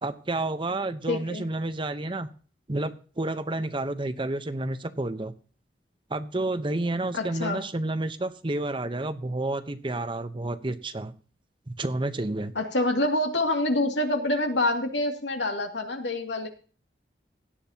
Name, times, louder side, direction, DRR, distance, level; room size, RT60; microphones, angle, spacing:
voice 1, 0.0-2.3 2.7-5.3 6.1-11.1 11.7-12.5, right 2 dB, 30° right, 10 dB, 0.9 m, -30 dB
voice 2, 1.1-1.5 7.1-7.6 12.6-16.5, left 1 dB, 85° left, 4 dB, 2.3 m, -26 dB
17.5 x 11.5 x 2.9 m, 0.38 s
head